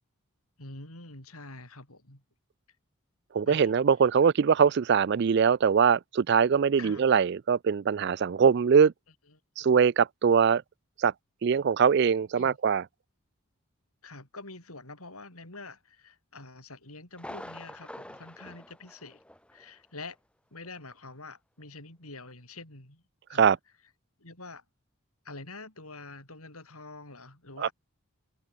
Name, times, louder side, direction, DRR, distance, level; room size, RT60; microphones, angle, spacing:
voice 1, 0.6-2.2 3.4-3.7 6.8-7.1 9.3-9.4 12.3-12.6 14.0-19.2 19.5-20.2 20.5-23.0 23.3-23.6 24.2-24.6 25.2-27.7, left 3 dB, 85° left, 7.4 m, -46 dB
voice 2, 3.3-8.9 9.6-10.6 11.0-11.1 11.4-12.8 23.4-23.6 27.6-27.7, right 6 dB, 50° right, 0.3 m, -22 dB
Thunder, 17.1-19.7 20.0-20.1 20.6-20.7, left 1 dB, 5° left, 3.5 m, -45 dB
open air
head